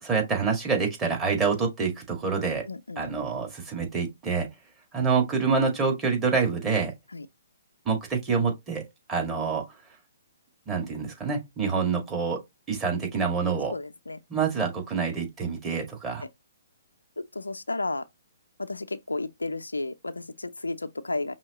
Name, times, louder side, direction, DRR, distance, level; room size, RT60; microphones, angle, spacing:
voice 1, 0.0-2.7 3.0-4.5 4.9-6.9 7.9-8.8 9.1-9.6 10.7-12.4 12.7-13.7 14.3-16.2, right 5 dB, 15° right, 1.9 m, -26 dB
voice 2, 2.7-3.1 5.1-5.2 7.1-7.3 13.5-14.2 17.3-18.0 18.6-21.3, left 2 dB, 85° left, 0.5 m, -33 dB
5.5 x 2.9 x 2.9 m
figure-of-eight pair, 130°, 0 cm